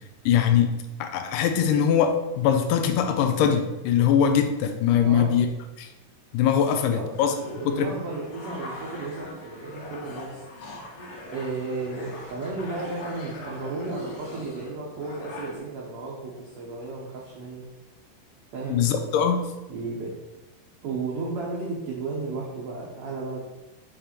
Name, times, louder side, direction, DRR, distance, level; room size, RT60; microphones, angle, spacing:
voice 1, 0.3-0.7 1.0-5.5 5.8-5.9 6.3-7.3 7.7-7.9 18.7-19.5, left 8 dB, 85° left, 7 dB, 2.2 m, -22 dB
voice 2, 6.6-7.0 7.4-10.3 11.2-17.6 18.5-18.8 19.7-20.1 20.8-23.4, right 3 dB, 65° right, -4 dB, 1.6 m, -33 dB
sound 1, 7.1-15.6, left 2 dB, 65° left, 1.5 m, -41 dB
7.4 x 3.3 x 4.3 m, 1.0 s
omnidirectional pair, 3.8 m